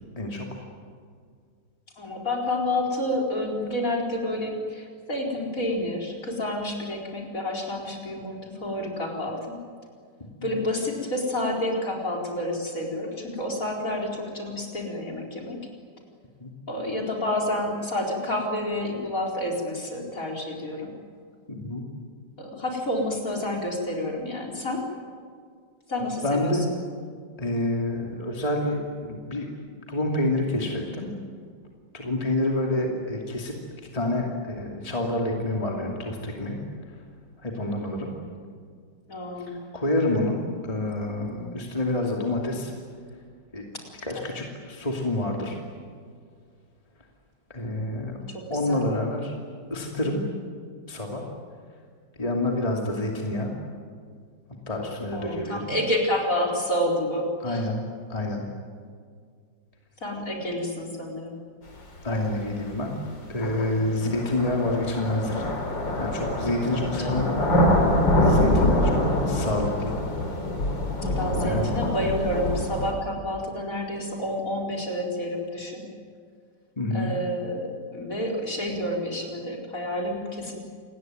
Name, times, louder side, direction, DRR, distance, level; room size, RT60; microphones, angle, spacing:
voice 1, 0.2-0.5 10.4-10.5 16.4-16.5 21.5-21.8 26.0-26.6 27.4-29.5 29.9-31.1 31.9-33.5 33.9-36.6 37.4-38.1 39.4-39.5 39.7-40.4 40.7-42.7 43.5-43.7 44.0-45.6 47.5-48.2 48.5-49.3 49.7-50.2 50.9-51.2 52.2-53.5 54.7-55.7 57.4-57.8 58.1-58.4 62.0-62.9 63.3-65.4 66.0-67.5 68.2-69.0 69.2-70.0 71.4-71.7 76.8-77.1, left 1 dB, 20° left, 0 dB, 2.8 m, -28 dB
voice 2, 2.0-9.6 10.4-15.6 16.7-20.9 22.4-24.9 25.9-26.7 39.1-39.6 44.1-44.2 48.3-48.8 55.1-57.7 60.0-61.3 63.6-64.1 66.7-67.3 71.0-75.9 76.9-80.6, left 1 dB, 45° left, 0 dB, 4.8 m, -29 dB
sound 1, 62.3-62.4 63.4-72.9, left 1 dB, 85° left, 4.4 m, -24 dB
28.0 x 20.5 x 9.4 m, 2.1 s
omnidirectional pair, 1.9 m